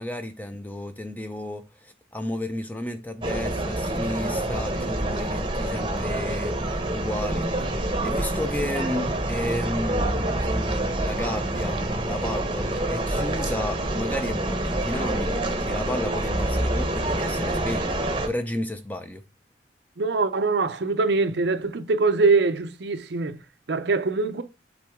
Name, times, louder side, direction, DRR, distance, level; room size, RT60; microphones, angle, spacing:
voice 1, 0.0-19.2, left 1 dB, 10° left, 0.6 m, -33 dB
sound 1, 3.2-18.3, right 1 dB, 25° right, 0.9 m, -27 dB
voice 2, 20.0-23.4 23.7-24.4, right 3 dB, 60° right, 0.6 m, -23 dB
7.6 x 4.0 x 3.5 m
head